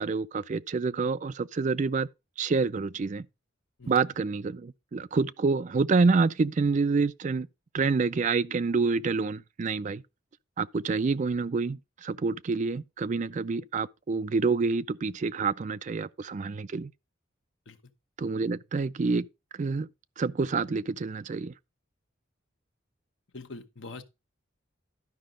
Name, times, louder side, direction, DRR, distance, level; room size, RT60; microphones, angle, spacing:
voice 1, 0.0-2.1 2.4-3.3 3.9-7.5 7.7-10.0 10.6-16.9 18.2-19.3 19.6-19.9 20.2-21.5, right 4 dB, 40° right, 0.4 m, -27 dB
voice 2, 23.3-24.0, left 3 dB, 70° left, 1.0 m, -43 dB
12.0 x 5.2 x 3.7 m
head